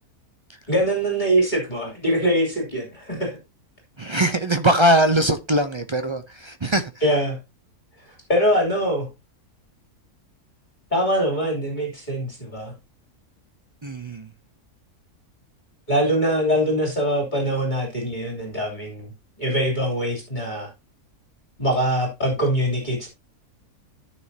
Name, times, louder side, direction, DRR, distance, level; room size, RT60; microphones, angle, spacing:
voice 1, 0.7-3.4 7.0-7.4 8.1-9.1 10.9-12.7 15.9-19.1 19.4-20.7 21.6-23.1, equal, 30° left, 3.2 m, -23 dB
voice 2, 4.0-6.9 13.8-14.3, right 1 dB, 45° right, 0.3 m, -21 dB
14.0 x 6.3 x 2.8 m
omnidirectional pair, 1.6 m